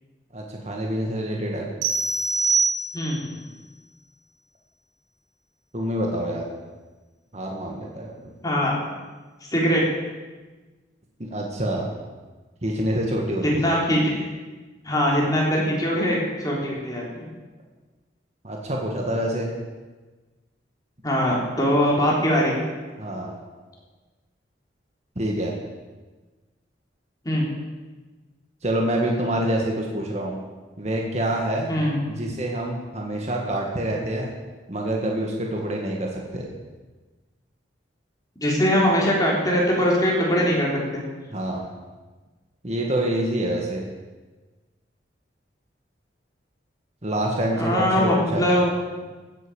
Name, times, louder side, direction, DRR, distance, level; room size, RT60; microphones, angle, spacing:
voice 1, 0.3-1.7 3.2-3.4 5.7-6.5 7.3-8.3 11.3-11.9 12.6-13.8 18.4-19.5 23.0-23.4 25.2-25.5 28.6-30.3 30.8-31.7 32.1-34.3 34.7-36.5 41.3-41.7 42.6-43.9 47.0-48.6, right 1 dB, 35° right, 0 dB, 1.8 m, -26 dB
sound 1, 1.8-3.3, right 4 dB, 85° right, 1.9 m, -24 dB
voice 2, 8.4-8.8 9.5-9.8 13.6-14.2 14.8-17.3 21.0-22.6 27.3-27.5 31.7-32.0 38.4-41.0 47.5-48.7, equal, 20° left, -4 dB, 3.7 m, -22 dB
16.0 x 8.2 x 7.0 m, 1.3 s
head